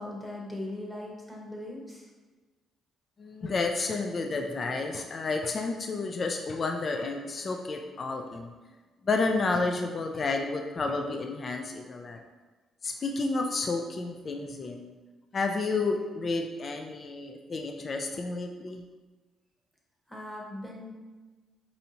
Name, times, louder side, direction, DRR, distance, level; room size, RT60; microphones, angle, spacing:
voice 1, 0.0-2.1 20.1-20.9, left 1 dB, ahead, -3 dB, 0.9 m, -39 dB
voice 2, 3.2-8.5 9.0-12.2 12.8-14.9 15.3-18.8, left 3 dB, 40° left, 3 dB, 0.3 m, -31 dB
4.3 x 2.7 x 2.8 m, 1.2 s
cardioid pair, 90°, 0 cm